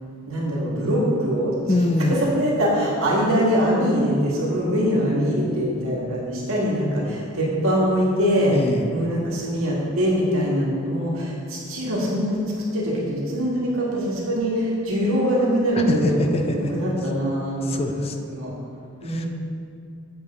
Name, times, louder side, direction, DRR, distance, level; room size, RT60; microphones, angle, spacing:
voice 1, 0.3-1.8 2.4-8.5 8.9-18.5 19.0-19.3, equal, 90° right, -5 dB, 2.0 m, -23 dB
voice 2, 1.7-2.2 8.5-8.9 15.8-16.7 17.6-18.1 19.0-19.3, left 2 dB, 30° left, 5 dB, 0.4 m, -24 dB
8.1 x 7.1 x 3.8 m, 2.4 s
head